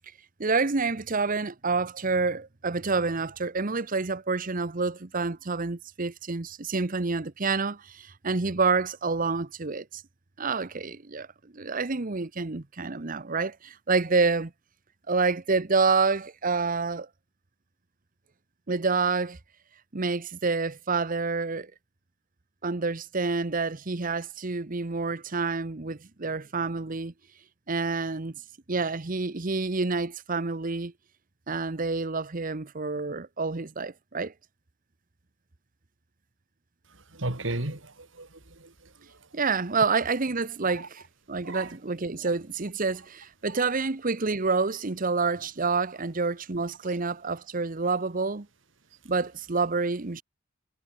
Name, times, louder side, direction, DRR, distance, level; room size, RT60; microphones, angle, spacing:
voice 1, 0.4-10.0 10.4-11.3 11.5-14.5 15.1-17.1 18.7-19.4 19.9-21.7 22.6-27.1 27.7-28.4 28.7-30.9 31.5-34.3 39.3-41.0 41.3-48.5 49.0-50.2, right 4 dB, 45° right, 1.0 m, -28 dB
voice 2, 37.1-38.7 41.4-41.7 46.9-47.0, right 2 dB, 75° right, 2.9 m, -34 dB
head